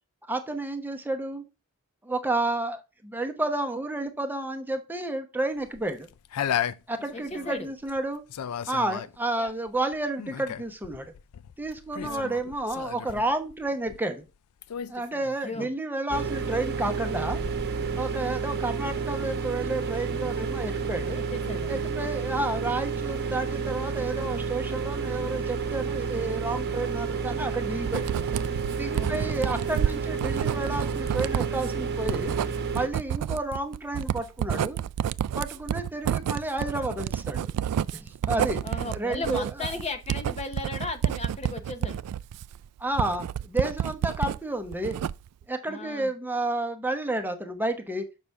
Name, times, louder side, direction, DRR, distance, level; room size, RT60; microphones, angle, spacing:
voice 1, 0.3-1.4 2.0-6.1 6.9-8.2 8.7-11.1 11.6-14.2 14.9-17.4 17.9-21.2 21.7-28.2 28.8-32.3 32.7-34.8 35.4-37.5 37.9-38.6 38.9-39.4 42.8-45.0 45.5-48.0, right 2 dB, 10° right, 6 dB, 0.8 m, -31 dB
sound 1, 5.6-8.0 8.3-14.3 14.6-15.7, left 9 dB, 75° left, 0.4 m, -35 dB
voice 2, 7.1-7.7 12.0-12.4 15.4-15.7 21.1-21.9 28.9-29.4 38.6-42.0 45.7-46.1, left 3 dB, 30° left, 7 dB, 0.7 m, -36 dB
sound 2, 16.1-32.9, right 5 dB, 45° right, 0.9 m, -30 dB
Writing, 27.9-44.4 44.7-45.4, right 9 dB, 85° right, 0.3 m, -30 dB
6.8 x 5.4 x 3.4 m, 0.28 s
head